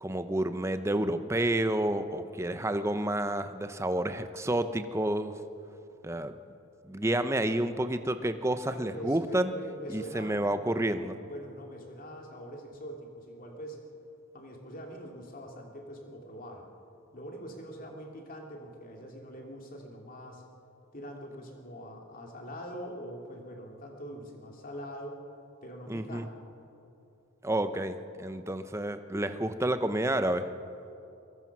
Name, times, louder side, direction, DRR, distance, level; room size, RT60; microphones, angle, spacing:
voice 1, 0.0-5.3 6.0-6.3 6.8-9.5 9.9-11.2 25.9-26.3 27.4-30.5, right 1 dB, 15° right, 10 dB, 0.8 m, -30 dB
voice 2, 8.7-10.6 11.2-13.8 14.3-16.6 17.1-20.4 20.9-25.2 25.6-26.5, equal, 40° left, 1 dB, 2.9 m, -43 dB
23.0 x 21.5 x 6.1 m, 2.7 s
head